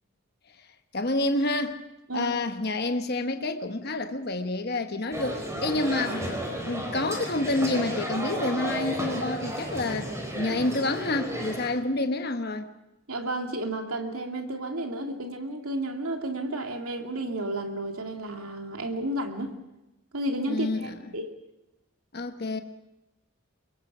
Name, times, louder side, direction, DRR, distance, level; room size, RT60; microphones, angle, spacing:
voice 1, 0.9-1.8 2.1-12.7 20.5-20.9 22.1-22.6, left 2 dB, 45° left, 1.2 m, -28 dB
sound 1, 5.1-11.7, equal, 15° right, 4.4 m, -33 dB
voice 2, 13.1-19.6 20.1-21.3, right 1 dB, 80° right, 2.7 m, -32 dB
24.5 x 22.0 x 6.2 m
head